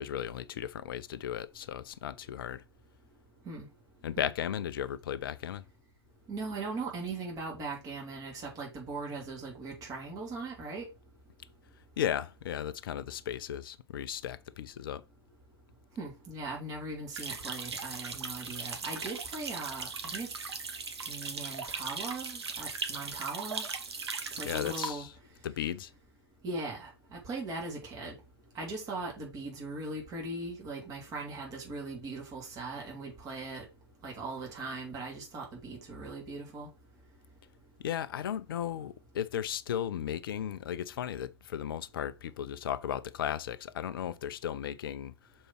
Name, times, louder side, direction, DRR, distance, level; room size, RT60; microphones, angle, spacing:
voice 1, 0.0-2.6 4.0-5.6 12.0-15.0 24.4-25.1 25.4-25.9 37.8-45.1, left 10 dB, 55° left, 0.6 m, -35 dB
voice 2, 6.3-10.9 16.0-20.3 21.1-23.6 24.3-25.1 26.4-28.1 28.5-33.7 34.0-36.7, right 3 dB, 25° right, 2.9 m, -39 dB
sound 1, 17.1-24.9, right 4 dB, 70° right, 1.3 m, -38 dB
6.7 x 4.3 x 4.5 m
figure-of-eight pair, 115°, 14 cm